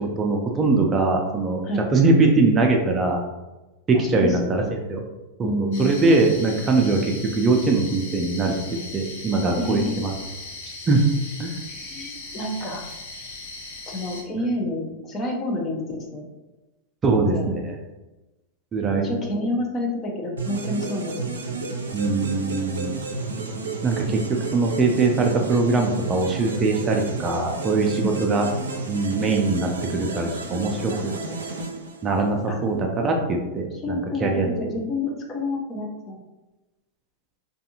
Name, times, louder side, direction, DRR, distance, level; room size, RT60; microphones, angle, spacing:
voice 1, 0.0-1.6 1.9-3.2 3.9-5.0 5.4-8.5 8.9-10.1 10.9-11.0 11.4-11.6 17.0-17.4 18.7-19.1 21.9-23.0 23.8-24.2 24.5-28.5 28.9-31.1 32.0-34.5, right 3 dB, 25° right, 1 dB, 0.5 m, -22 dB
voice 2, 3.9-4.7 5.4-5.9 9.6-10.0 11.7-12.8 13.9-16.3 17.1-17.5 18.9-21.1 21.4-21.7 28.0-28.3 30.9-31.4 32.4-32.6 33.8-36.2, left 1 dB, 30° left, 0 dB, 0.7 m, -29 dB
sound 1, 5.7-14.2, left 2 dB, 65° left, 0.7 m, -38 dB
sound 2, 20.4-32.4, right 3 dB, 90° right, 0.4 m, -32 dB
2.5 x 2.4 x 2.8 m, 1.1 s
hypercardioid pair, 105°, 0 cm